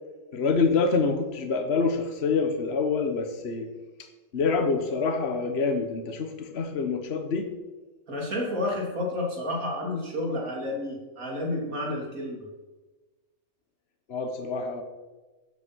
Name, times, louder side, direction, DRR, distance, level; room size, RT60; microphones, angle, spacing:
voice 1, 0.3-3.7 4.3-7.5 14.1-14.8, left 4 dB, 50° left, 5 dB, 1.4 m, -26 dB
voice 2, 8.1-12.4, left 1 dB, 85° right, -2 dB, 3.7 m, -30 dB
13.5 x 8.5 x 6.2 m, 1.2 s
omnidirectional pair, 1.4 m